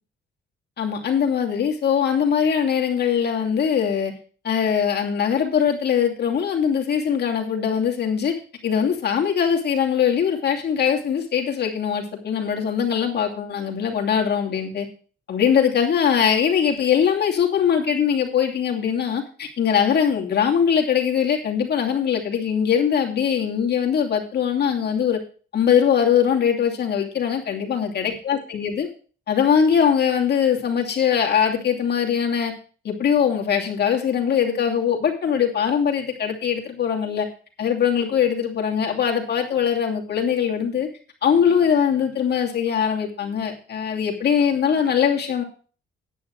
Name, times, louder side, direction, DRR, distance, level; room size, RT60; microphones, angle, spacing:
voice 1, 0.8-4.1 4.4-8.3 8.6-14.9 15.3-25.2 25.5-28.9 29.3-32.5 32.8-37.3 37.6-40.9 41.2-45.4, left 8 dB, 55° left, 1 dB, 2.8 m, -21 dB
10.0 x 9.0 x 4.8 m, 0.39 s
cardioid pair, 90°, 20 cm